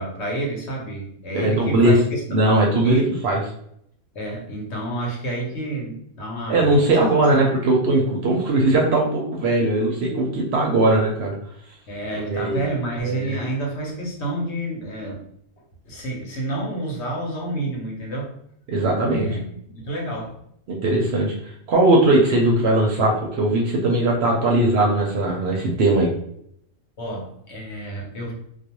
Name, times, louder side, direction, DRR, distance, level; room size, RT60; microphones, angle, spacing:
voice 1, 0.0-2.4 2.8-3.0 4.1-7.5 11.9-15.2 15.8-18.3 19.1-20.3 27.0-28.3, right 1 dB, 60° left, -2 dB, 0.9 m, -29 dB
voice 2, 1.3-2.0 2.3-3.4 6.5-11.3 12.3-12.6 13.0-13.4 18.7-19.3 20.7-26.1, right 2 dB, 60° right, -2 dB, 0.7 m, -19 dB
2.4 x 2.2 x 2.8 m, 0.70 s
omnidirectional pair, 1.4 m